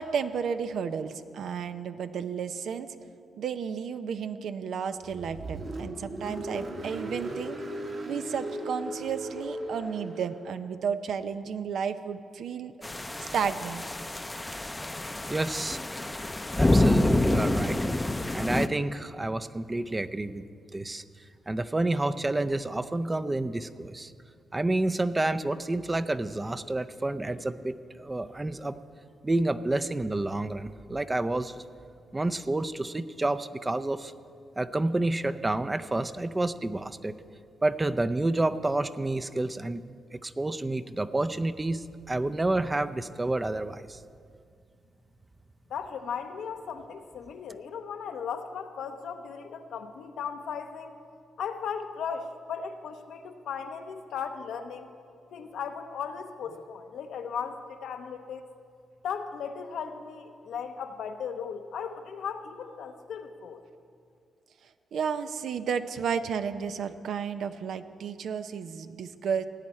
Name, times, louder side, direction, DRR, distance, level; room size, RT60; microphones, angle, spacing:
voice 1, 0.0-2.9 3.4-7.6 8.1-12.7 13.2-13.8 64.9-69.4, right 7 dB, 70° right, 10 dB, 0.6 m, -32 dB
Car, 5.0-10.5, right 1 dB, 55° right, 1.9 m, -37 dB
sound 1, 12.8-18.7, left 1 dB, 20° left, 0.6 m, -27 dB
voice 2, 15.3-15.8 16.6-17.8 18.3-20.4 20.7-21.0 21.5-24.1 24.5-28.7 29.2-31.5 32.1-34.1 34.6-37.1 37.6-39.8 40.1-44.0, right 2 dB, 25° right, 12 dB, 0.6 m, -29 dB
voice 3, 45.7-50.9 51.4-54.9 55.3-58.4 59.0-63.6, left 6 dB, 75° left, 6 dB, 0.8 m, -37 dB
17.5 x 9.2 x 4.3 m, 2.3 s
supercardioid pair, 50°, 0 cm